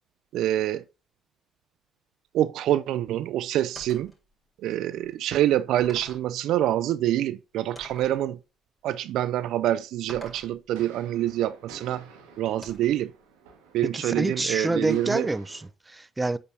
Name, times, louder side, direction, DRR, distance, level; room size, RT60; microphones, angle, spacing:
voice 1, 0.3-0.8 2.3-4.1 4.6-8.4 8.8-12.1 12.4-13.1 13.7-15.3, right 12 dB, 70° right, 0.4 m, -26 dB
sound 1, 3.8-4.2 5.0-5.1 5.8-6.3 7.8-8.2 10.1-10.6 12.6-13.0, equal, ahead, 4.1 m, -46 dB
sound 2, 10.7-15.7, right 5 dB, 85° right, 1.4 m, -50 dB
voice 2, 13.9-16.4, right 2 dB, 20° right, 0.5 m, -27 dB
8.3 x 5.2 x 2.7 m
hypercardioid pair, 55°, 0 cm